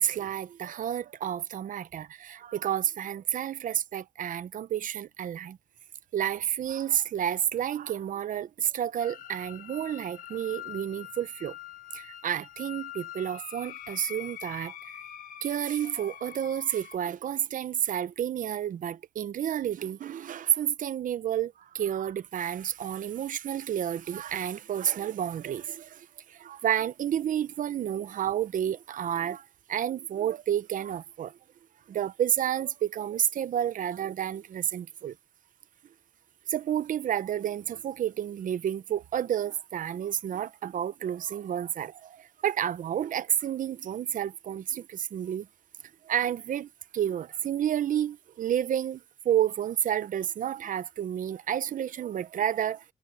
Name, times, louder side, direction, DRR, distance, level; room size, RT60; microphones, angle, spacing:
voice 1, 0.0-5.6 6.1-11.6 11.9-15.0 15.4-31.4 31.9-35.2 36.5-45.5 46.0-52.8, right 10 dB, 75° right, 0.7 m, -30 dB
sound 1, 9.0-17.0, left 11 dB, 90° left, 1.3 m, -44 dB
cardioid pair, 75°, 14 cm